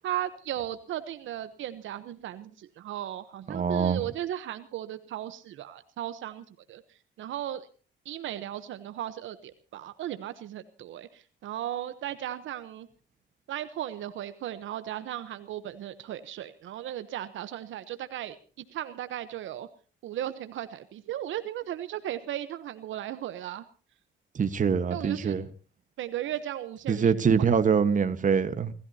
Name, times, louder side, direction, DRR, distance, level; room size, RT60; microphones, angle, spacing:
voice 1, 0.0-6.8 7.2-7.7 8.0-12.9 13.5-19.7 20.0-23.6 24.9-25.4 26.0-27.1, right 12 dB, 75° right, 1.0 m, -36 dB
voice 2, 3.5-4.0 24.3-25.4 26.9-28.7, right 6 dB, 40° right, 1.3 m, -24 dB
29.5 x 14.5 x 2.8 m
cardioid pair, 90°, 20 cm